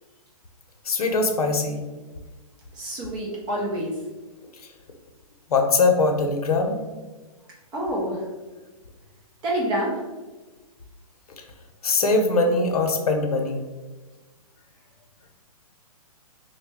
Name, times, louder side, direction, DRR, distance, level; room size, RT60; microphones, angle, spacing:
voice 1, 0.9-1.8 5.5-6.8 11.8-13.6, left 3 dB, 75° left, 3 dB, 0.7 m, -21 dB
voice 2, 2.7-3.9 7.7-8.3 9.4-10.0, right 1 dB, 20° right, -3 dB, 0.7 m, -27 dB
3.7 x 2.2 x 3.5 m, 1.2 s
hypercardioid pair, 145°, 19 cm